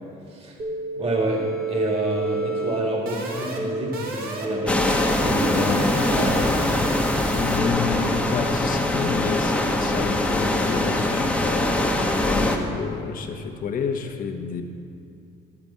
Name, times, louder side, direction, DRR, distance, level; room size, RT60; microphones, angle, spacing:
voice 1, 0.3-0.6 1.0-6.6, right 1 dB, 35° right, -1 dB, 1.9 m, -28 dB
sound 1, 0.6-7.7, right 2 dB, 60° right, 1.7 m, -30 dB
sound 2, 4.7-12.6, left 1 dB, 5° left, 1.0 m, -22 dB
voice 2, 7.3-14.6, left 6 dB, 55° left, 4 dB, 1.1 m, -30 dB
12.0 x 5.0 x 8.4 m, 2.6 s
cardioid pair, 110°, 17 cm